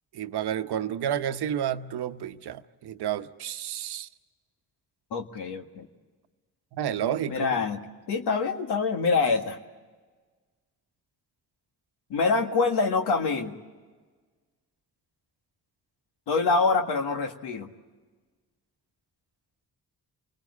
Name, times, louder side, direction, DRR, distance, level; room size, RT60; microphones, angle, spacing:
voice 1, 0.1-4.1 6.7-7.5, right 10 dB, 80° right, 1.0 m, -30 dB
voice 2, 5.1-5.9 7.3-7.8 8.1-9.6 12.1-13.6 16.3-17.7, left 4 dB, 90° left, 1.9 m, -25 dB
29.5 x 20.0 x 8.6 m
supercardioid pair, 55°, 39 cm